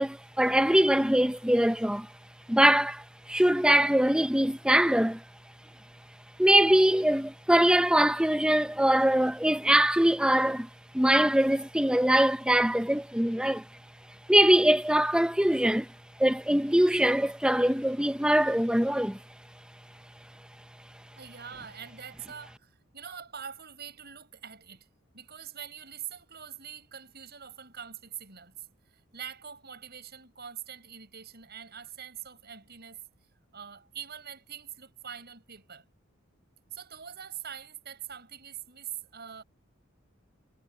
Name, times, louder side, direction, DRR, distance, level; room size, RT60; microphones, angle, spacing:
voice 1, 0.0-2.1 2.5-5.2 6.4-10.7 10.9-13.6 14.3-15.9 16.2-19.2, right 1 dB, 5° right, 1.1 m, -23 dB
voice 2, 21.1-24.9 25.1-33.0 33.5-35.8 36.7-39.4, right 8 dB, 50° right, 6.4 m, -44 dB
head